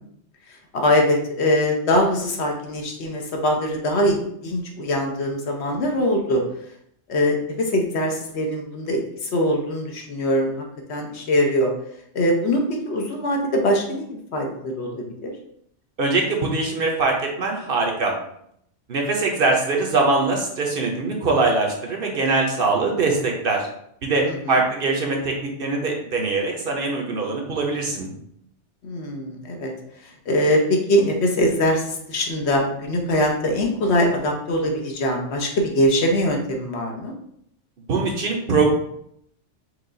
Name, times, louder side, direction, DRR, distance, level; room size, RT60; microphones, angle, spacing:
voice 1, 0.7-6.4 7.1-10.6 10.9-11.7 12.1-15.3 24.2-24.6 28.8-29.7 30.3-37.1, equal, 65° left, 2 dB, 1.0 m, -22 dB
voice 2, 16.0-18.2 18.9-23.7 24.0-28.1 37.9-38.7, right 3 dB, 55° right, 0 dB, 0.9 m, -22 dB
4.7 x 2.4 x 3.8 m, 0.72 s
omnidirectional pair, 1.2 m